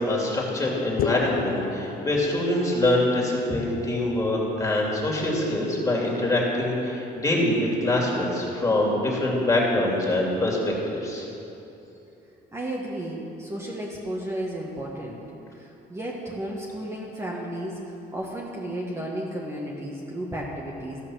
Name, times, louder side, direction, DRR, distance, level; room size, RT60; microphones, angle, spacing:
voice 1, 0.0-11.3, left 1 dB, 20° left, -3 dB, 2.7 m, -24 dB
sound 1, 1.0-2.9, left 8 dB, 60° left, 0.6 m, -31 dB
voice 2, 12.5-15.2 15.6-17.8 18.1-21.0, right 1 dB, 15° right, -4 dB, 1.3 m, -33 dB
15.5 x 5.9 x 6.2 m, 2.9 s
cardioid pair, 110°, 17 cm